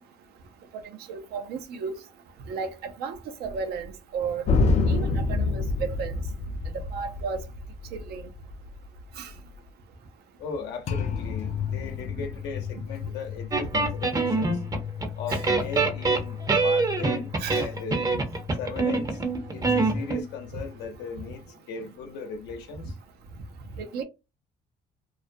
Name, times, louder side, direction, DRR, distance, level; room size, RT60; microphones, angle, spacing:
voice 1, 1.1-2.0 2.5-4.4 4.9-6.1 6.7-7.4 7.9-8.3 9.2-9.3 15.3-15.4 17.4-17.6 23.8-24.0, right 5 dB, 75° right, 0.5 m, -33 dB
sound 1, 4.5-9.6 10.9-20.8, left 4 dB, 45° left, 0.5 m, -31 dB
voice 2, 10.4-14.6 15.2-18.0 18.6-19.2 19.5-22.9, left 5 dB, 80° left, 0.7 m, -37 dB
sound 2, 13.5-15.1 15.3-20.2, right 3 dB, 20° right, 0.6 m, -25 dB
2.3 x 2.1 x 2.5 m
cardioid pair, 110°, 17 cm